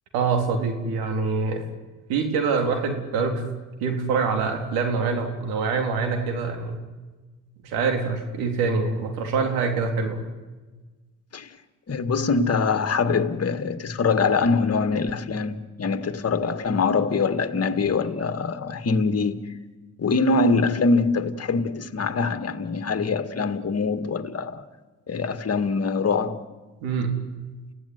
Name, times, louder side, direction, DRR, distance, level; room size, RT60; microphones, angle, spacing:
voice 1, 0.1-1.6 2.1-3.4 3.8-6.8 7.6-10.3 26.8-27.2, right 4 dB, 90° right, 3.8 m, -25 dB
voice 2, 11.9-19.4 20.0-24.6 25.1-26.4, left 4 dB, 45° left, 2.2 m, -23 dB
29.0 x 16.5 x 9.7 m
supercardioid pair, 60°, 36 cm